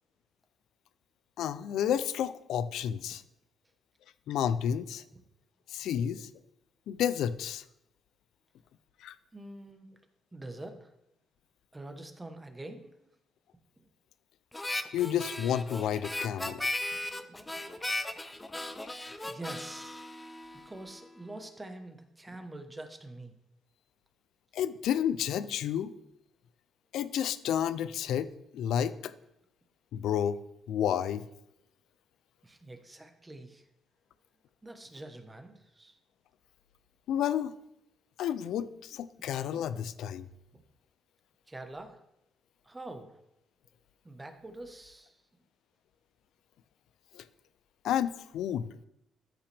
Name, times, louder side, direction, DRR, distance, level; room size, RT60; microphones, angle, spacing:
voice 1, 1.4-3.2 4.3-5.0 5.7-6.3 6.9-7.6 9.0-9.2 14.9-16.6 24.5-25.9 26.9-29.1 29.9-31.2 37.1-37.5 38.2-40.3 47.1-47.3 47.8-48.7, left 9 dB, 80° left, 15 dB, 0.4 m, -31 dB
voice 2, 9.3-9.9 10.3-10.9 11.7-12.9 13.8-13.9 16.9-17.7 18.5-18.6 19.2-20.0 20.5-23.3 32.4-33.7 34.6-36.0 40.5-40.6 41.5-42.0 42.6-43.2 44.0-45.2, right 2 dB, 15° right, 6 dB, 1.2 m, -45 dB
Harmonica, 14.5-21.0, left 1 dB, 15° left, 0.6 m, -37 dB
13.5 x 5.7 x 3.5 m, 0.83 s
cardioid pair, 90°, 0 cm